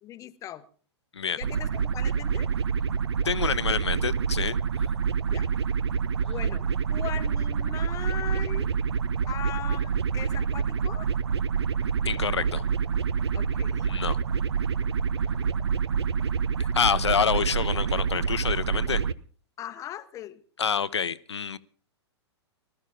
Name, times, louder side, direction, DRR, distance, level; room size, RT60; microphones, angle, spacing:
voice 1, 0.0-0.7 1.3-2.5 5.3-5.5 6.1-8.7 9.3-11.2 13.3-14.0 14.8-14.9 15.3-15.5 19.6-20.4, left 11 dB, 20° left, 0.8 m, -39 dB
sound 1, 1.4-19.1, right 6 dB, 70° right, 0.6 m, -27 dB
voice 2, 3.2-4.6 12.0-12.7 13.8-14.2 16.7-19.0 20.6-21.6, left 6 dB, 75° left, 0.7 m, -27 dB
19.5 x 13.5 x 3.5 m
figure-of-eight pair, 105°, 14 cm